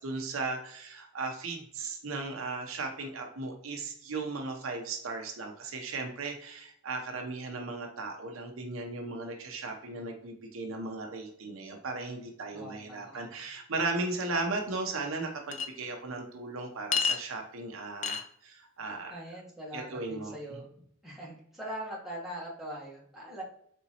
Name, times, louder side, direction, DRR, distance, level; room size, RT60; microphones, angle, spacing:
voice 1, 0.0-19.2 19.7-20.6, right 3 dB, 70° right, 3 dB, 0.7 m, -36 dB
voice 2, 12.5-13.2 19.1-20.7 21.0-23.4, right 1 dB, ahead, -5 dB, 1.2 m, -41 dB
Chink clink, 15.5-15.7 16.9-17.2 18.0-18.2, left 6 dB, 35° left, 0.3 m, -28 dB
4.0 x 3.5 x 2.8 m, 0.67 s
head